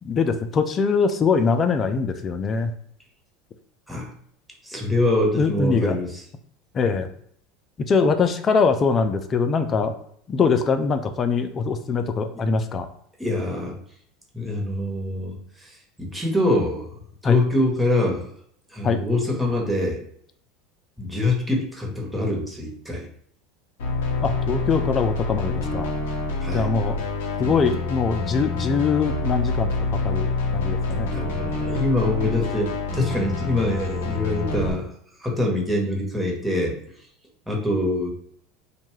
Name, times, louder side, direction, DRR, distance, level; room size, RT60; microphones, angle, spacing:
voice 1, 0.0-2.7 5.4-6.0 6.7-7.1 7.9-9.9 10.3-12.9 17.2-17.4 18.8-19.0 24.2-25.9 26.5-27.0 27.4-29.7 30.0-31.1, left 5 dB, 35° left, 9 dB, 0.4 m, -22 dB
voice 2, 4.6-6.2 13.2-13.7 14.3-15.7 16.0-16.9 17.2-18.3 18.7-20.0 21.0-23.1 26.4-26.7 31.1-34.9 35.2-36.8 37.5-38.1, left 1 dB, ahead, -1 dB, 1.0 m, -24 dB
sound 1, 23.8-34.7, left 3 dB, 75° left, 0.6 m, -27 dB
2.6 x 2.2 x 3.1 m, 0.64 s
hypercardioid pair, 85°, 0 cm